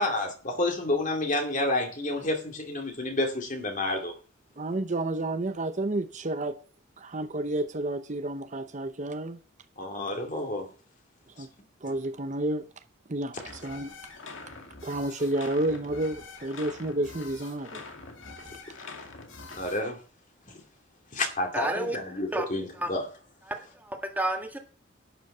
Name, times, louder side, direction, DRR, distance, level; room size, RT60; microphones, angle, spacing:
voice 1, 0.0-4.1 9.8-10.7 11.4-11.5 11.8-11.9 19.5-20.0 20.5-20.6 21.1-23.1, left 2 dB, 40° left, 2.4 m, -29 dB
voice 2, 4.6-6.6 7.0-9.4 11.4-11.5 11.8-12.6 13.1-13.9 14.8-17.8, right 1 dB, 40° right, 0.7 m, -30 dB
sound 1, 13.4-19.8, left 3 dB, 75° left, 2.1 m, -45 dB
voice 3, 21.5-22.0 22.3-22.4 22.8-22.9 23.5-24.6, right 1 dB, 10° right, 1.7 m, -30 dB
11.5 x 9.2 x 5.5 m
head